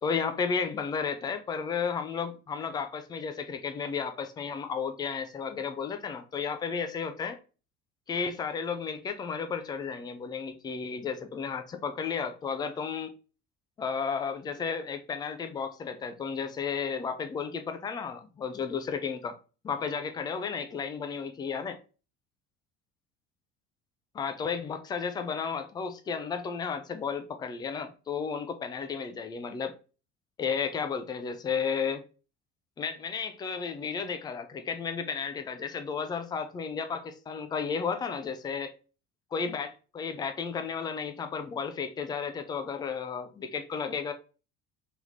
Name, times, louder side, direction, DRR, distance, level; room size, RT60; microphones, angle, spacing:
voice 1, 0.0-7.4 8.1-13.1 13.8-19.4 19.6-21.8 24.1-29.7 30.4-32.0 32.8-38.7 39.3-44.1, left 6 dB, 10° left, 0.3 m, -33 dB
3.4 x 3.4 x 2.6 m
figure-of-eight pair, 60°, 40 cm